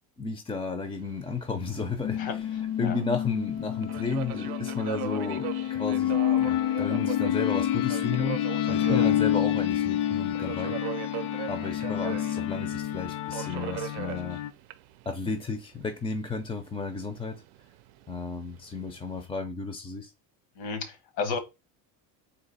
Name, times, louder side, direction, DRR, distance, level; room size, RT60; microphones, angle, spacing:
voice 1, 0.2-2.2 2.8-8.4 8.7-10.8 11.5-14.4 15.1-17.4 18.1-20.1, left 4 dB, 15° left, 0.5 m, -33 dB
Subway metro underground, 0.8-19.3, right 15 dB, 75° right, 0.6 m, -41 dB
sound 1, 2.0-14.5, left 11 dB, 60° left, 0.6 m, -28 dB
voice 2, 20.5-21.4, left 5 dB, 90° left, 1.4 m, -33 dB
4.0 x 2.8 x 4.0 m
cardioid pair, 135°, 39 cm